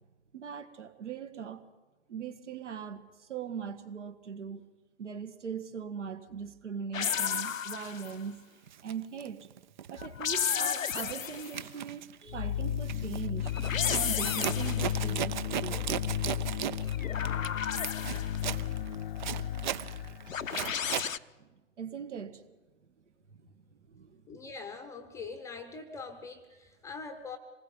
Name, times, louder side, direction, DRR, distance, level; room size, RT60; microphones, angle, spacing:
voice 1, 0.3-1.6 2.1-4.6 5.0-8.4 8.8-9.5 9.9-13.5 13.9-15.9 18.9-19.0 20.0-20.1 21.4-21.5 21.8-22.5 23.3-24.4, right 7 dB, 65° right, 10 dB, 2.0 m, -40 dB
sound 1, 6.9-8.2 10.0-11.6 13.4-15.0 16.8-18.5 20.3-21.2, left 8 dB, 80° left, 0.7 m, -33 dB
Zipper (clothing), 8.0-8.1 8.7-10.1 10.3-10.7 11.0-21.1, right 9 dB, 35° right, 0.7 m, -37 dB
sound 2, 12.3-20.5, left 10 dB, 40° left, 0.7 m, -34 dB
voice 2, 24.3-27.4, left 4 dB, 10° left, 9 dB, 0.9 m, -43 dB
26.5 x 19.5 x 5.5 m, 1.2 s
figure-of-eight pair, 125°, 39 cm